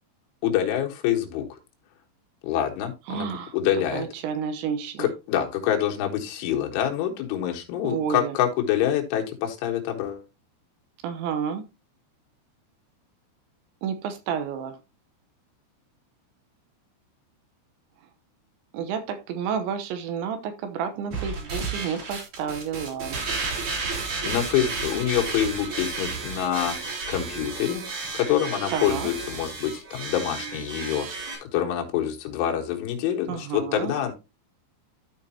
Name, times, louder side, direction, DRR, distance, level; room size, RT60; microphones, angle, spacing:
voice 1, 0.4-1.6 2.4-4.1 5.0-10.2 24.2-31.1 31.4-34.1, left 10 dB, 80° left, 2 dB, 3.8 m, -26 dB
voice 2, 3.1-3.5 3.9-5.1 7.8-8.4 11.0-11.7 13.8-14.8 18.7-23.2 28.7-29.1 33.3-33.9, right 7 dB, 80° right, 7 dB, 3.1 m, -30 dB
sound 1, 21.1-31.4, right 4 dB, 45° right, 3.7 m, -32 dB
13.0 x 5.2 x 2.8 m, 0.26 s
omnidirectional pair, 5.5 m